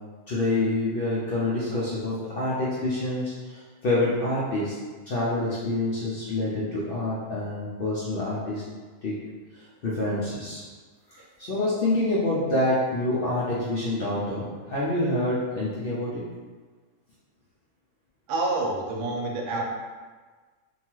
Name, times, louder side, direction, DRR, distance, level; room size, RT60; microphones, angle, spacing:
voice 1, 0.3-4.8 5.1-8.6 9.0-9.1 9.5-10.6 11.1-16.2, left 2 dB, 75° left, -8 dB, 0.5 m, -27 dB
voice 2, 18.3-19.6, right 2 dB, 85° right, -1 dB, 1.1 m, -27 dB
2.8 x 2.3 x 2.9 m, 1.4 s
omnidirectional pair, 1.6 m